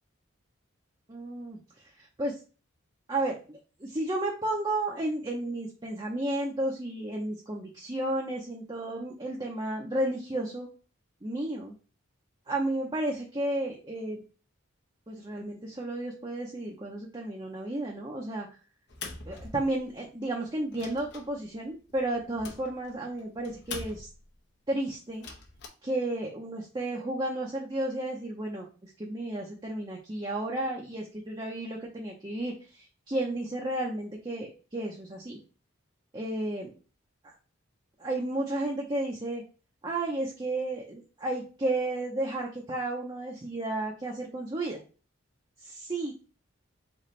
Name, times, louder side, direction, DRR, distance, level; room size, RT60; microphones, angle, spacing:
voice 1, 1.1-2.4 3.1-10.7 11.2-11.7 12.5-14.2 15.1-18.5 19.3-24.1 24.7-25.3 25.8-35.4 36.1-36.7 37.2-37.3 38.0-39.4 39.8-44.8 45.6-46.1, right 1 dB, 20° right, -1 dB, 0.7 m, -33 dB
sound 1, 18.9-20.1 20.5-24.4 25.1-25.7, left 4 dB, 55° left, 0.9 m, -44 dB
4.2 x 3.8 x 3.2 m, 0.36 s
head